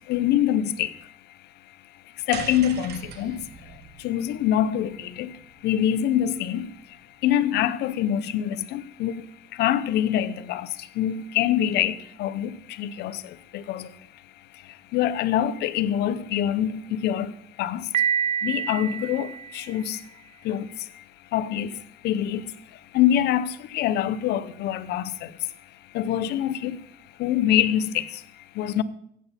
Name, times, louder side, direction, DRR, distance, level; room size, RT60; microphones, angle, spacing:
voice 1, 0.1-0.9 2.3-3.4 4.0-4.9 5.2-5.3 5.6-6.7 7.2-9.1 9.6-10.7 11.0-11.9 12.2-12.5 12.8-13.2 13.5-13.8 14.9-17.3 17.6-17.8 18.4-19.3 19.5-20.0 20.5-20.7 21.3-21.7 22.0-22.4 22.9-23.5 23.7-25.0 25.9-26.8 27.2-28.0 28.6-28.8, left 11 dB, 80° left, 0.7 m, -24 dB
sound 1, 2.3-6.7, right 7 dB, 80° right, 1.3 m, -41 dB
Piano, 17.9-19.9, right 8 dB, 40° right, 0.6 m, -27 dB
15.0 x 8.3 x 4.1 m
cardioid pair, 110°, 17 cm